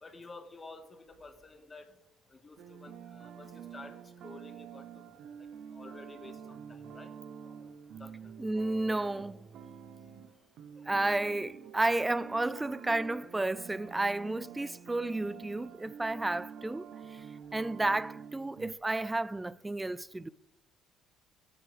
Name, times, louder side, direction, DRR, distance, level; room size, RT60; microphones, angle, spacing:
voice 1, 0.0-1.9 2.3-3.9 4.2-5.3 5.7-7.1 7.4-7.7 8.0-8.6 12.5-12.7 16.1-16.3 16.9-17.0 17.6-17.7, left 3 dB, 20° left, 1.5 m, -51 dB
sound 1, 2.6-18.7, right 7 dB, 55° right, 0.9 m, -47 dB
voice 2, 8.4-9.4 10.9-17.2 17.5-20.3, right 2 dB, 10° right, 0.3 m, -32 dB
16.0 x 10.5 x 3.4 m
cardioid pair, 160°, 0 cm